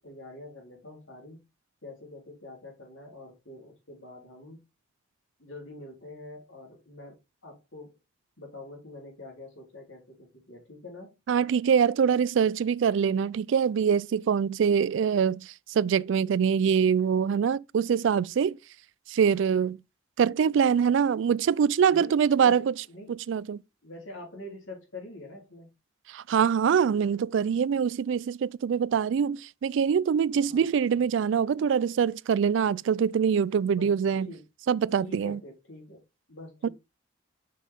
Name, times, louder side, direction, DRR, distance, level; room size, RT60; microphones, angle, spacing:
voice 1, 0.0-1.4 1.8-4.6 5.4-8.0 8.4-11.1 21.9-23.2 23.8-25.7 30.4-30.7 33.7-33.9 34.2-34.4 34.9-36.7, left 2 dB, 80° left, 3.7 m, -45 dB
voice 2, 11.3-18.6 19.1-19.8 20.2-22.7 23.3-23.6 26.1-34.3 34.7-35.4 36.6-36.7, right 7 dB, 70° right, 0.3 m, -24 dB
6.4 x 5.5 x 3.6 m
head